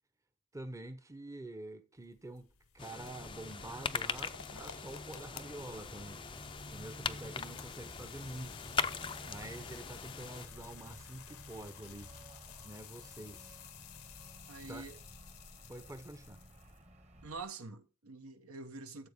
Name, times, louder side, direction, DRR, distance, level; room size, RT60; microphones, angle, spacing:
voice 1, 0.5-2.5 2.7-6.2 6.7-8.6 9.3-12.1 12.6-13.6 14.7-14.9 15.7-16.4, right 1 dB, 15° right, 0.7 m, -47 dB
sound 1, 2.0-16.8, left 9 dB, 85° left, 0.8 m, -54 dB
sound 2, 2.8-10.5, left 6 dB, 25° left, 0.4 m, -41 dB
sound 3, 3.0-17.4, right 1 dB, 30° right, 1.3 m, -53 dB
voice 2, 14.5-15.0 17.2-19.1, right 3 dB, 80° right, 1.2 m, -46 dB
13.5 x 7.6 x 3.6 m
head